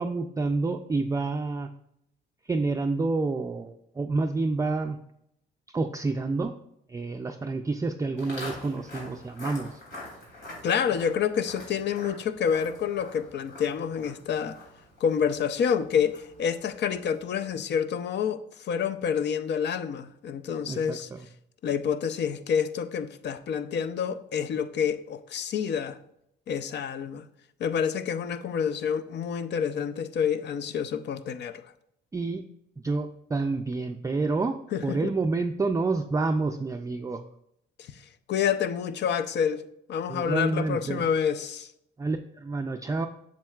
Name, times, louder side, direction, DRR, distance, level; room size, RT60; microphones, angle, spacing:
voice 1, 0.0-1.7 2.5-5.0 5.7-6.5 6.9-9.8 20.7-21.3 32.1-32.4 32.8-34.6 34.8-37.2 40.1-41.0 42.0-43.1, right 3 dB, 15° right, 0.4 m, -28 dB
Walk footsteps, 8.2-17.4, left 1 dB, 90° left, 2.9 m, -45 dB
voice 2, 10.6-14.6 15.0-21.1 21.6-26.0 26.5-27.3 27.6-31.7 34.7-35.1 37.8-41.7, left 7 dB, 60° left, 0.5 m, -28 dB
7.4 x 7.2 x 2.4 m
cardioid pair, 90°, 20 cm